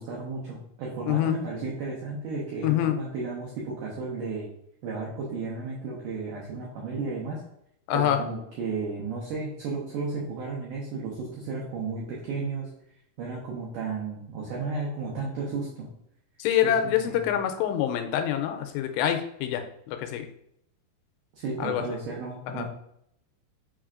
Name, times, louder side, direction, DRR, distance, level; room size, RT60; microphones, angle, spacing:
voice 1, 0.0-4.5 4.8-7.4 7.9-12.7 13.2-15.9 16.6-17.3 21.3-22.6, right 4 dB, 85° right, -5 dB, 1.8 m, -33 dB
voice 2, 1.1-1.4 2.6-3.0 7.9-8.2 16.4-20.3 21.6-22.0 22.5-22.7, left 10 dB, 85° left, 6 dB, 2.7 m, -26 dB
6.2 x 3.2 x 2.4 m, 0.74 s
omnidirectional pair, 4.9 m